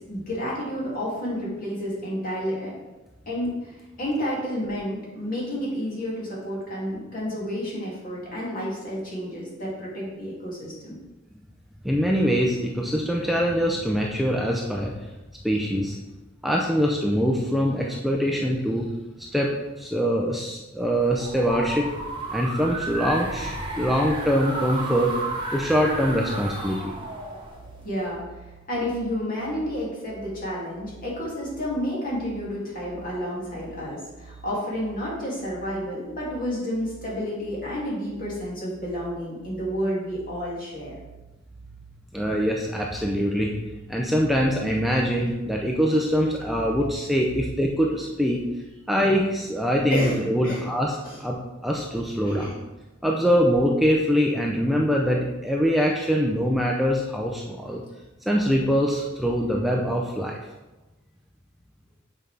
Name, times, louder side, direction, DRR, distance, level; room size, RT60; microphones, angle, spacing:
voice 1, 0.1-2.7 3.3-3.7 4.0-11.0 27.8-28.2 28.7-40.9 49.9-50.6 51.0-51.2 52.2-52.5, equal, 45° left, -6 dB, 2.5 m, -30 dB
voice 2, 11.8-14.9 15.4-16.0 16.4-18.9 19.2-19.5 19.8-21.9 22.3-25.1 25.5-26.9 42.1-43.5 43.9-48.4 48.9-52.5 53.0-57.8 58.3-60.4, equal, ahead, -2 dB, 0.5 m, -23 dB
sound 1, 21.0-28.1, right 2 dB, 25° right, 1.4 m, -33 dB
sound 2, 27.5-47.1, right 5 dB, 70° right, 0.6 m, -49 dB
7.9 x 5.3 x 3.4 m, 1.1 s
head